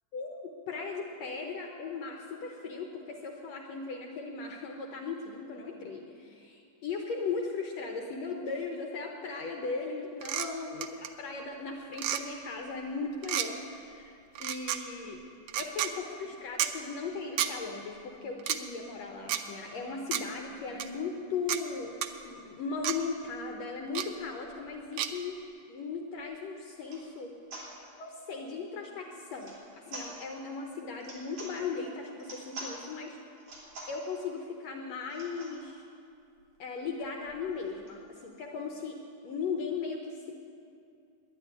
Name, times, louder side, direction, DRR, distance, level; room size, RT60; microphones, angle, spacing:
voice 1, 0.1-15.2 15.6-21.9 22.2-25.4 25.7-27.4 28.0-29.6 29.9-33.2 33.9-35.9 36.6-39.0 39.2-40.4, left 4 dB, 70° left, 2 dB, 1.8 m, -37 dB
sound 1, 10.2-10.5 10.8-11.1 11.9-12.2 13.2-13.5 14.3-14.8 15.5-15.9 16.6-16.7 17.4-17.5 18.4-18.6 19.3-19.4 20.1-20.2 20.8-20.9 21.5-21.6 22.0-22.1 22.8-23.0 23.9-24.1 25.0-25.1, right 11 dB, 85° right, 1.4 m, -30 dB
sound 2, 26.2-26.3 26.8-27.1 27.5-27.7 29.3-29.6 29.9-30.1 31.0-31.5 32.2-32.7 33.4-34.0 35.1-35.6 36.1-36.2 36.4-36.5 36.8-38.3, right 1 dB, 50° right, 4.3 m, -45 dB
10.5 x 10.5 x 9.5 m, 2.5 s
omnidirectional pair, 3.6 m